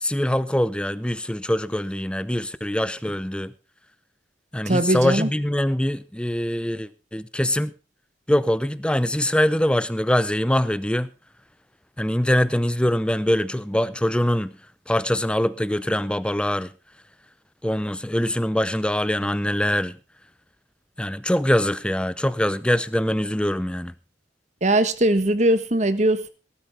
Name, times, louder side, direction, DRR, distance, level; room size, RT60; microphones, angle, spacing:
voice 1, 0.0-3.5 4.5-7.7 8.3-11.1 12.0-14.5 14.9-16.7 17.6-20.0 21.0-23.9, left 1 dB, 5° left, 0.7 m, -23 dB
voice 2, 4.7-5.3 24.6-26.3, right 1 dB, 40° right, 1.4 m, -20 dB
18.0 x 12.5 x 3.5 m
head